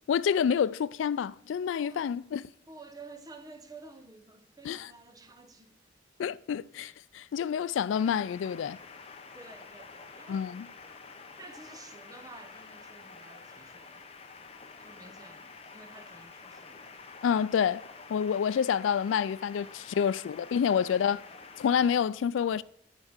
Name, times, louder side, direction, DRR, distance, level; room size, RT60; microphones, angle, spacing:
voice 1, 0.1-2.4 4.6-4.9 6.2-8.8 10.3-10.7 17.2-17.8 18.1-21.2 21.6-22.6, left 7 dB, 90° left, 0.3 m, -28 dB
voice 2, 1.8-2.1 2.7-5.9 9.3-10.5 11.4-14.1 14.8-17.0 21.0-21.2, right 3 dB, 20° right, 0.8 m, -51 dB
sound 1, 7.9-22.0, left 4 dB, 30° left, 0.8 m, -49 dB
8.8 x 4.5 x 6.4 m
head